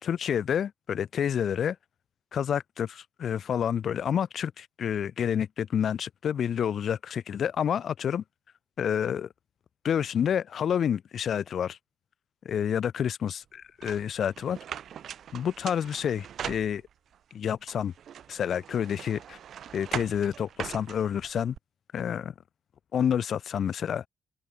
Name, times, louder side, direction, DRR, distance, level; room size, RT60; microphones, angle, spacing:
voice 1, 0.0-1.8 2.3-8.2 8.8-9.3 9.8-11.8 12.4-14.6 15.3-16.8 17.3-17.9 18.3-19.4 19.7-21.6 21.9-22.3 22.9-24.1, left 8 dB, 60° left, 5.6 m, -29 dB
sound 1, 13.8-17.2 17.7-21.6, right 9 dB, 65° right, 3.1 m, -40 dB
open air
cardioid pair, 90°, 0 cm